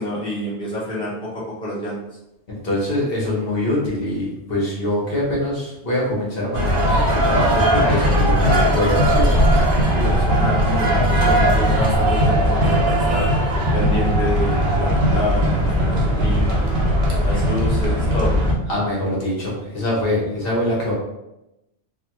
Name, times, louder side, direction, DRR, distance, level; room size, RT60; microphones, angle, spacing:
voice 1, 0.0-2.0 9.9-13.3 13.7-16.6 17.2-18.3, left 1 dB, 5° left, -8 dB, 0.9 m, -28 dB
voice 2, 2.5-9.3 18.7-20.9, left 1 dB, 60° left, -5 dB, 1.2 m, -23 dB
sound 1, 6.5-18.5, equal, 60° right, 0.9 m, -18 dB
3.5 x 2.2 x 2.9 m, 0.90 s
omnidirectional pair, 1.1 m